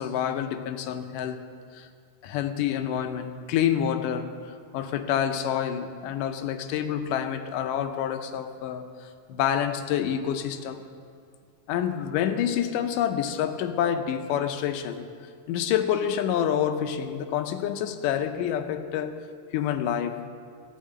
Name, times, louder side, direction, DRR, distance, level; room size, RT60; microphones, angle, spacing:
voice 1, 0.0-1.5 1.7-1.9 2.2-10.8 11.7-15.1 15.5-19.2 19.5-20.2, left 9 dB, 85° left, 8 dB, 2.3 m, -28 dB
14.0 x 6.6 x 9.1 m, 2.4 s
omnidirectional pair, 3.7 m